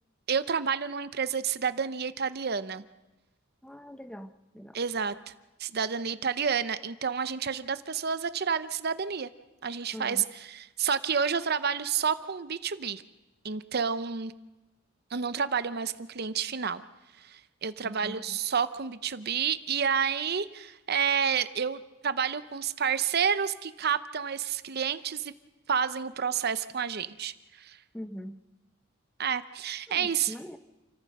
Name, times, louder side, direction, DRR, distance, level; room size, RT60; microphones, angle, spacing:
voice 1, 0.3-2.8 4.7-5.3 5.6-9.3 9.6-13.0 13.4-14.3 15.1-16.8 17.2-25.3 25.7-27.8 29.2-30.3, right 6 dB, 50° right, 13 dB, 0.7 m, -30 dB
voice 2, 3.6-4.8 9.9-10.3 17.8-18.4 27.9-28.4 29.9-30.6, equal, 5° left, 10 dB, 0.7 m, -43 dB
28.5 x 14.5 x 6.5 m, 1.1 s
head